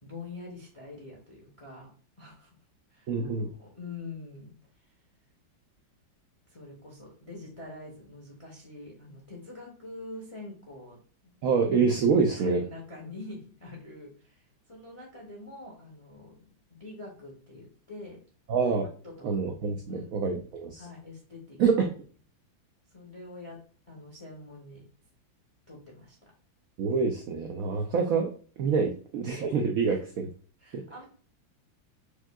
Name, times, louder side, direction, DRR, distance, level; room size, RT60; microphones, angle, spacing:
voice 1, 0.0-1.9 2.2-2.5 2.9-4.5 6.5-11.3 12.4-16.4 16.7-18.2 19.0-19.4 19.9-20.2 20.8-21.6 22.9-23.6 23.9-24.8 25.7-26.2 29.9-30.0 30.6-31.1, left 2 dB, 35° left, -2 dB, 0.5 m, -45 dB
voice 2, 3.1-3.5 11.4-12.6 18.5-18.9 19.2-20.8 21.6-21.9 26.8-30.3 30.7-30.8, right 5 dB, 80° right, 3 dB, 0.7 m, -26 dB
4.8 x 2.6 x 2.3 m, 0.42 s
omnidirectional pair, 2.1 m